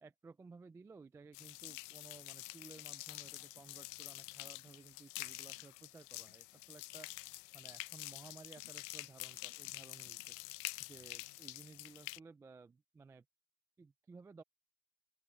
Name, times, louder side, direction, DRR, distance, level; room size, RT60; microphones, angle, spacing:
voice 1, 0.0-7.2 7.5-10.4 10.8-13.2 13.8-14.4, right 4 dB, 10° right, 0.3 m, -57 dB
sound 1, 1.3-12.2, left 22 dB, 55° left, 0.9 m, -47 dB
open air
supercardioid pair, 130°, 37 cm